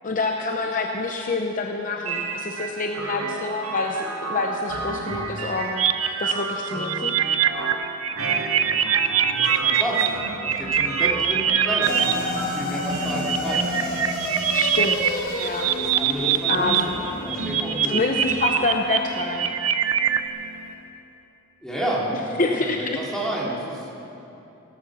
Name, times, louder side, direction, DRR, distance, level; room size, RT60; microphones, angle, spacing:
voice 1, 0.0-5.8 6.2-7.1 14.5-15.7 16.5-16.9 17.9-19.5 22.4-23.0, left 3 dB, 40° left, 2 dB, 0.8 m, -27 dB
sound 1, 2.1-20.7, right 3 dB, 90° right, 1.9 m, -34 dB
sound 2, 5.8-12.1 12.8-16.8 17.1-20.3, right 9 dB, 70° right, 0.7 m, -23 dB
voice 2, 8.6-8.9 9.4-13.7 15.7-18.2 21.6-23.9, right 1 dB, 5° left, -5 dB, 2.6 m, -31 dB
sound 3, 11.8-20.3, left 2 dB, 85° left, 2.8 m, -31 dB
17.0 x 13.0 x 6.1 m, 2.9 s
head